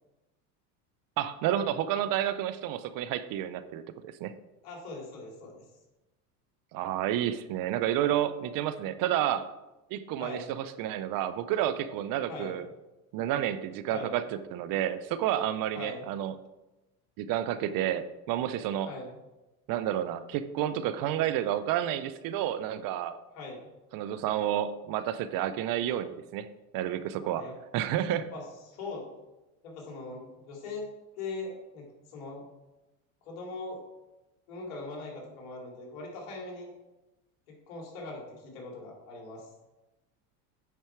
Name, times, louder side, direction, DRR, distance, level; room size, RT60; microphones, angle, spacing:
voice 1, 1.2-4.3 6.7-9.5 9.9-12.7 13.1-14.2 14.5-16.3 17.2-18.9 19.7-23.2 23.9-26.5 26.7-27.4 27.7-28.3, right 11 dB, 50° right, 13 dB, 0.6 m, -30 dB
voice 2, 4.6-5.6 10.2-10.5 12.3-12.5 13.9-14.1 15.7-16.0 18.8-19.1 23.3-23.6 27.2-27.5 28.3-29.1 29.6-30.8 31.2-32.4 33.2-33.8 34.5-36.7 37.5-39.5, left 3 dB, 75° left, -1 dB, 3.0 m, -41 dB
9.2 x 4.5 x 4.5 m, 1.0 s
supercardioid pair, 95°, 44 cm